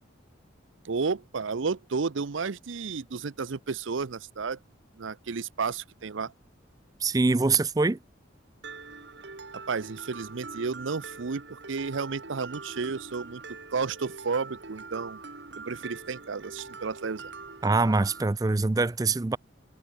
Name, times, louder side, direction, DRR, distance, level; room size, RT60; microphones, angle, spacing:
voice 1, 0.8-4.6 5.0-6.3 9.5-13.4 13.7-15.2 15.6-17.3, right 5 dB, 80° right, 0.7 m, -32 dB
voice 2, 7.0-8.0 17.6-19.4, right 3 dB, 20° right, 0.4 m, -24 dB
Mallet percussion, 8.6-18.2, right 4 dB, 60° right, 1.7 m, -43 dB
head